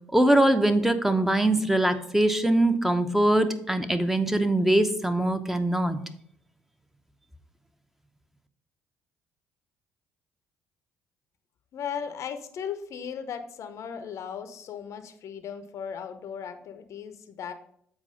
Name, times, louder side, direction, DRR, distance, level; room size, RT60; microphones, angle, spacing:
voice 1, 0.1-6.0, right 1 dB, 5° right, 9 dB, 0.8 m, -22 dB
voice 2, 11.7-17.5, left 7 dB, 55° left, 10 dB, 0.7 m, -37 dB
7.4 x 4.8 x 5.1 m, 0.70 s
hypercardioid pair, 55°, 6 cm